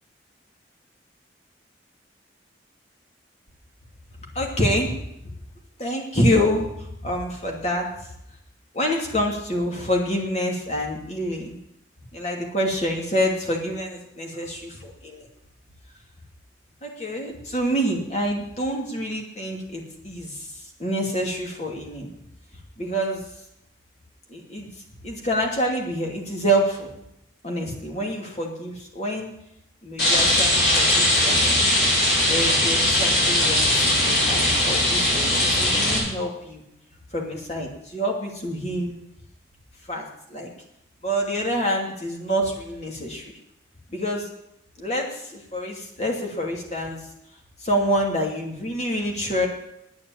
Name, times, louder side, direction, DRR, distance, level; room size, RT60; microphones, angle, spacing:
voice 1, 4.3-5.0 5.8-7.9 8.7-11.6 12.1-15.3 16.8-22.1 22.8-23.3 24.3-24.7 25.0-26.9 27.4-29.3 29.8-31.7 32.3-36.6 37.1-38.9 39.9-40.5 41.0-43.3 43.9-44.3 44.8-47.0 47.6-49.5, equal, 35° left, 0 dB, 2.7 m, -27 dB
Rain, 30.0-36.0, left 1 dB, 55° left, 6.4 m, -20 dB
9.7 x 9.2 x 8.8 m, 0.80 s
head